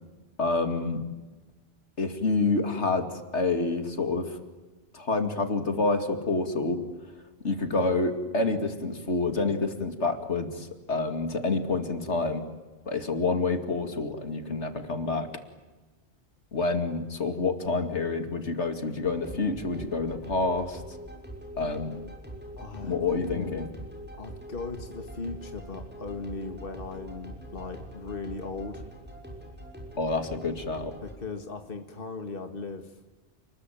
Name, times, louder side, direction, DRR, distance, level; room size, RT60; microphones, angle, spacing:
voice 1, 0.4-1.0 2.0-4.4 4.9-6.8 7.4-12.4 12.9-15.3 16.5-20.8 21.6-22.0 22.8-23.7 30.0-31.0, left 3 dB, 80° left, 7 dB, 2.7 m, -28 dB
sound 1, 19.0-31.1, right 1 dB, 10° right, 6.1 m, -43 dB
voice 2, 22.6-23.7 24.2-28.8 31.0-32.9, left 3 dB, 50° left, 6 dB, 2.1 m, -38 dB
30.0 x 21.0 x 9.2 m, 1.2 s
omnidirectional pair, 1.2 m